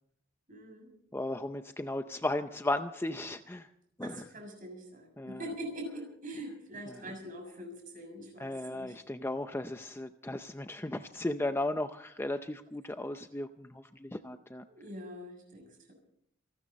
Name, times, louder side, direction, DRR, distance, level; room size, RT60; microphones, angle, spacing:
voice 1, 0.5-0.9 4.0-8.9 14.7-15.9, right 1 dB, 40° right, 3 dB, 6.6 m, -44 dB
voice 2, 1.1-3.7 4.0-4.3 5.2-5.4 6.9-7.1 8.4-14.7, left 1 dB, 10° left, 8 dB, 0.5 m, -36 dB
27.5 x 13.0 x 4.1 m, 0.72 s
head